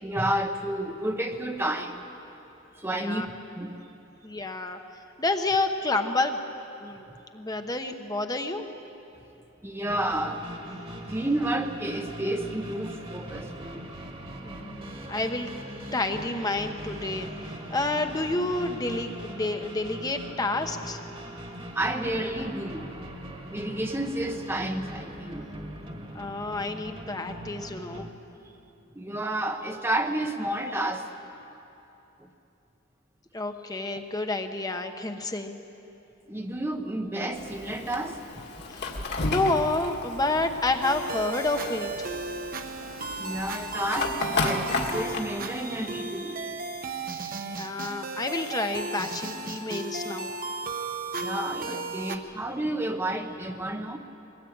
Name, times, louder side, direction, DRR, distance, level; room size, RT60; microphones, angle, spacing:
voice 1, 0.0-2.0 2.7-3.8 9.6-10.8 11.1-13.8 21.7-23.1 23.5-25.5 28.9-31.1 32.2-32.3 36.3-38.2 38.6-38.7 43.2-46.5 51.1-54.0, right 1 dB, 10° right, 4 dB, 0.8 m, -31 dB
voice 2, 2.9-3.3 4.2-4.8 5.2-6.4 6.8-7.1 7.3-8.7 14.4-15.5 15.9-21.0 26.1-28.1 33.3-35.6 38.7-39.0 39.2-42.1 47.4-50.4, left 2 dB, 20° left, 5 dB, 0.9 m, -29 dB
sound 1, 9.9-28.1, equal, 25° right, 1.6 m, -41 dB
Fire, 37.3-45.2, left 3 dB, 50° left, 1.9 m, -33 dB
sound 2, 40.8-52.2, right 3 dB, 40° right, 1.1 m, -35 dB
22.0 x 17.5 x 8.7 m, 3.0 s
head